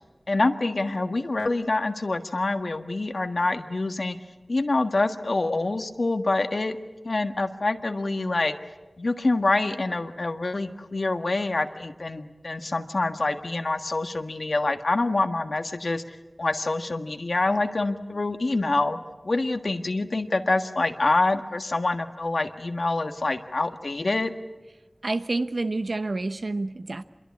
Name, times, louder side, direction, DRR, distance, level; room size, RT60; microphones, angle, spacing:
voice 1, 0.3-4.2 4.5-6.8 7.0-8.5 9.0-16.0 16.4-19.0 19.2-24.3, left 2 dB, 65° left, 7 dB, 1.6 m, -26 dB
voice 2, 25.0-27.0, right 2 dB, 70° right, 11 dB, 1.0 m, -28 dB
26.5 x 22.5 x 8.6 m, 1.1 s
wide cardioid pair, 60°, 0 cm